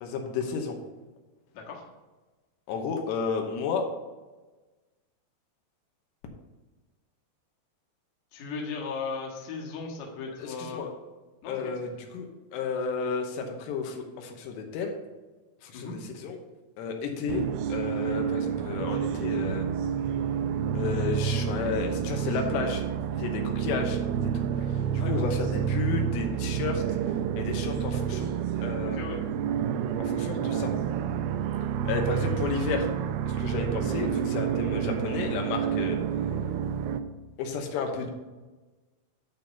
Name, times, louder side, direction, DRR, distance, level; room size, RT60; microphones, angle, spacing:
voice 1, 0.0-0.8 2.7-3.9 10.4-10.9 11.5-15.0 15.6-16.4 16.8-17.4 17.7-19.7 20.7-22.8 23.2-24.0 24.3-24.4 24.9-26.8 27.4-28.3 28.6-29.0 30.0-30.7 31.9-32.9 33.3-36.0 37.4-38.1, left 5 dB, 90° left, 3 dB, 3.2 m, -32 dB
voice 2, 8.3-10.8 11.4-11.7 15.7-16.0 24.9-25.2 28.8-29.2, left 4 dB, 55° left, -1 dB, 2.2 m, -36 dB
sound 1, 17.3-37.0, right 8 dB, 85° right, 2.2 m, -29 dB
11.0 x 3.9 x 5.7 m, 1.2 s
omnidirectional pair, 4.9 m